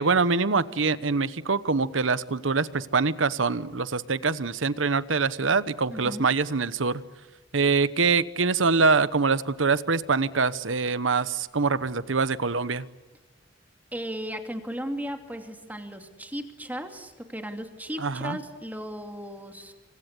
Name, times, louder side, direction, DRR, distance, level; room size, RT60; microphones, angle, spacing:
voice 1, 0.0-7.0 7.5-12.9 18.0-18.4, right 4 dB, 85° right, 15 dB, 1.1 m, -24 dB
voice 2, 5.9-6.3 13.9-19.7, equal, 10° right, 5 dB, 2.7 m, -36 dB
28.5 x 25.5 x 8.2 m, 1.2 s
head